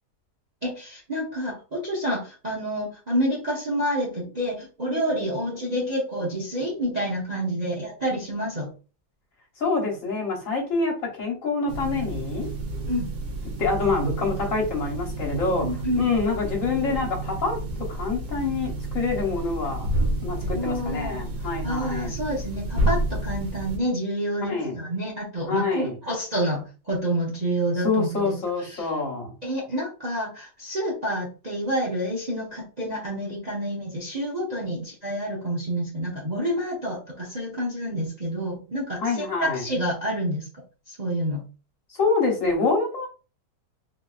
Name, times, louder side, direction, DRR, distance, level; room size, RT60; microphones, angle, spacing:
voice 1, 0.6-8.7 12.8-13.2 15.6-16.1 20.4-21.2 21.6-28.4 28.6-28.9 29.4-40.5 40.9-41.5, equal, 40° right, -3 dB, 0.6 m, -28 dB
voice 2, 9.6-12.5 13.6-15.7 16.0-17.6 17.9-19.9 20.2-22.1 24.4-24.8 25.5-25.9 27.8-29.3 39.0-39.6 41.9-43.1, left 4 dB, 55° left, -2 dB, 1.5 m, -26 dB
sound 1, 11.7-23.8, right 1 dB, 75° right, 1.6 m, -30 dB
3.9 x 2.6 x 2.4 m, 0.33 s
omnidirectional pair, 1.7 m